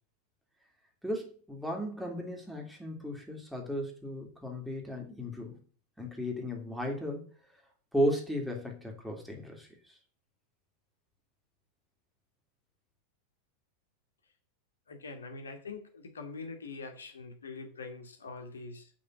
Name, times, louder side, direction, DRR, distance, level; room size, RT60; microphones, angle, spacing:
voice 1, 1.0-5.6 6.0-7.3 7.9-9.7, equal, ahead, 0 dB, 3.1 m, -35 dB
voice 2, 14.9-18.9, left 4 dB, 70° left, 4 dB, 2.3 m, -44 dB
8.5 x 5.9 x 7.6 m, 0.41 s
figure-of-eight pair, 90°, 0 cm